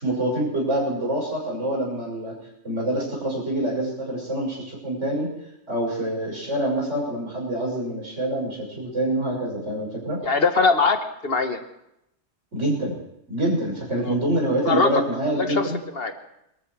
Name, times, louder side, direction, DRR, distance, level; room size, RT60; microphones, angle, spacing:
voice 1, 0.0-2.3 2.6-5.3 5.7-10.2 12.5-13.0 13.3-15.8, right 1 dB, 75° right, -3 dB, 6.4 m, -26 dB
voice 2, 10.2-11.0 11.2-11.6 14.0-14.2 14.7-15.0 15.4-15.7 15.9-16.1, left 4 dB, 55° left, 7 dB, 1.4 m, -21 dB
22.0 x 13.5 x 4.7 m, 0.82 s
omnidirectional pair, 1.2 m